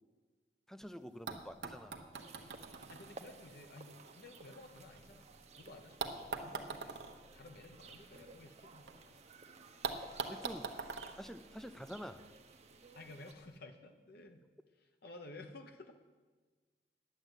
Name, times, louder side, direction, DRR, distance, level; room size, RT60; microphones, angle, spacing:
voice 1, 0.7-2.1 10.3-10.7 11.2-12.3, equal, ahead, 11 dB, 0.5 m, -47 dB
sound 1, 0.8-0.9 1.3-5.3 6.0-9.0 9.2-9.3 9.8-12.2 13.2-13.3, right 4 dB, 80° right, 1.1 m, -45 dB
sound 2, 2.1-13.3, right 3 dB, 40° right, 0.8 m, -57 dB
voice 2, 2.9-5.3 5.6-7.0 7.3-9.2 12.9-14.4 14.7-15.9, left 2 dB, 60° left, 5 dB, 0.9 m, -54 dB
10.0 x 7.8 x 9.0 m, 1.3 s
head